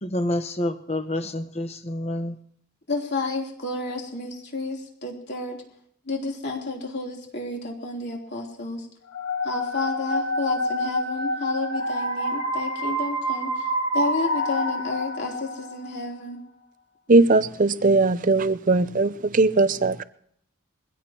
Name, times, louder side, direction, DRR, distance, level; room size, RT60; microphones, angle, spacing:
voice 1, 0.0-2.4, left 1 dB, 30° left, 1.0 m, -28 dB
voice 2, 2.9-5.6 6.0-8.9 9.4-13.7 13.9-16.4, left 2 dB, 50° left, 3.4 m, -31 dB
sound 1, 9.1-15.9, equal, 80° left, 1.9 m, -27 dB
voice 3, 17.1-20.0, right 3 dB, 35° right, 0.6 m, -19 dB
22.0 x 16.5 x 3.0 m
head